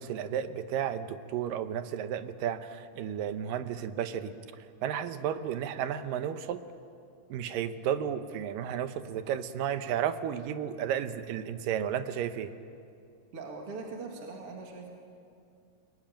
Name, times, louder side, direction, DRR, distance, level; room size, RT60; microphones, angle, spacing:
voice 1, 0.0-4.3 4.8-6.6 7.3-12.5, right 9 dB, 90° right, 10 dB, 2.7 m, -33 dB
voice 2, 13.3-14.9, right 3 dB, 45° right, 0 dB, 2.9 m, -41 dB
29.0 x 21.0 x 8.9 m, 2.4 s
omnidirectional pair, 3.8 m